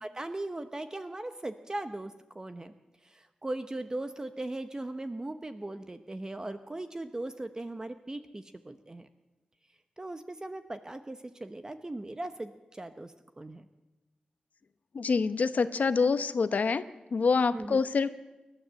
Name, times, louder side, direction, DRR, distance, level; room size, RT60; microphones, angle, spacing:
voice 1, 0.0-2.7 3.1-9.1 10.0-13.6 17.5-17.8, right 2 dB, 25° right, 9 dB, 0.9 m, -39 dB
voice 2, 14.9-16.8 17.1-18.1, left 4 dB, 70° left, 11 dB, 1.0 m, -26 dB
29.0 x 12.0 x 7.6 m, 1.1 s
wide cardioid pair, 100°, 3 cm